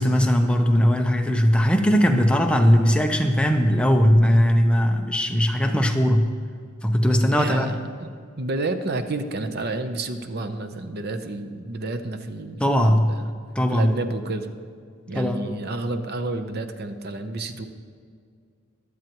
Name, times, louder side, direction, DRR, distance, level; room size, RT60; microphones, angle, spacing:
voice 1, 0.0-6.3 6.8-7.7 12.6-13.1 13.6-13.9 15.1-15.4, equal, 5° left, 4 dB, 0.7 m, -19 dB
voice 2, 7.3-8.1 8.4-13.3 13.7-14.5 15.1-17.7, right 2 dB, 55° right, 8 dB, 0.8 m, -30 dB
23.5 x 8.2 x 3.0 m, 2.2 s
head